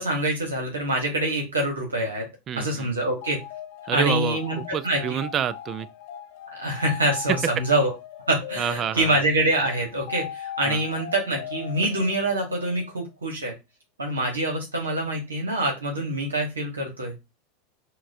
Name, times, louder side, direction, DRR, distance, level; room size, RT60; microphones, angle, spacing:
voice 1, 0.0-2.3 2.6-3.4 3.9-5.2 6.6-7.9 8.3-13.6 14.0-17.1, right 1 dB, 85° right, 0.9 m, -25 dB
voice 2, 2.5-2.9 3.9-5.9 8.6-9.1 10.7-10.8, right 8 dB, 35° right, 0.3 m, -28 dB
sound 1, 3.2-12.9, left 10 dB, 60° left, 0.6 m, -39 dB
5.8 x 2.2 x 2.5 m
hypercardioid pair, 85°, 0 cm